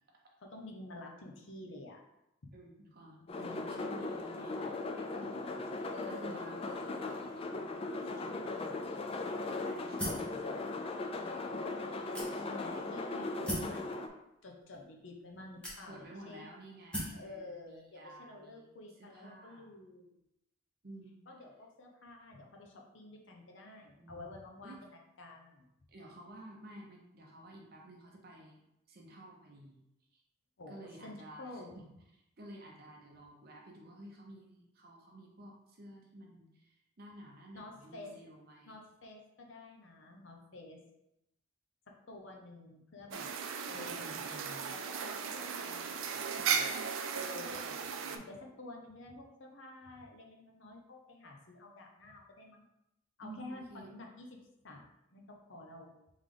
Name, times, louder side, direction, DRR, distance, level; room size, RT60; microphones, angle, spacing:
voice 1, 0.4-2.0 2.4-2.5 3.3-4.1 5.9-6.6 8.0-8.8 9.8-10.6 12.6-14.0 14.4-16.5 17.1-20.2 21.3-25.7 30.6-31.8 37.5-38.1 38.7-40.8 41.9-43.3 43.6-46.9 47.1-47.6 48.1-52.6 53.2-54.4 54.6-54.8 55.1-55.9, left 2 dB, 65° left, 1 dB, 0.8 m, -50 dB
voice 2, 2.5-7.4 8.4-8.7 9.6-10.6 12.1-13.0 15.9-19.7 20.8-21.2 24.0-24.3 24.6-24.8 25.9-29.8 30.1-30.2 30.7-31.5 31.7-31.9 32.4-38.8 43.7-44.7 47.5-48.1 53.2-53.9, right 1 dB, 50° right, 0 dB, 0.7 m, -52 dB
sound 1, 3.3-14.1, left 3 dB, 30° left, 0.3 m, -38 dB
sound 2, 10.0-10.3 11.1-11.2 12.1-12.7 13.5-13.8 14.7-14.8 15.6-16.2 16.9-17.2, equal, 5° left, 1.0 m, -38 dB
sound 3, 43.1-48.2, right 6 dB, 80° right, 0.4 m, -36 dB
3.6 x 3.3 x 3.7 m, 0.85 s
head